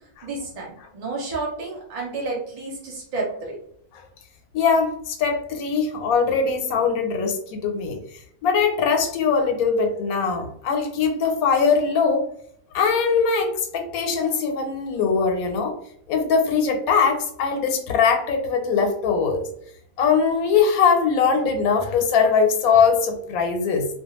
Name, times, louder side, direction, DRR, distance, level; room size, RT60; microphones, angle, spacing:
voice 1, 0.2-3.6, right 3 dB, 45° right, -3 dB, 0.4 m, -30 dB
voice 2, 4.5-8.0 8.4-12.2 12.7-15.7 16.1-19.4 20.0-23.9, left 5 dB, 85° left, 5 dB, 1.1 m, -21 dB
2.4 x 2.3 x 2.9 m, 0.68 s
omnidirectional pair, 1.5 m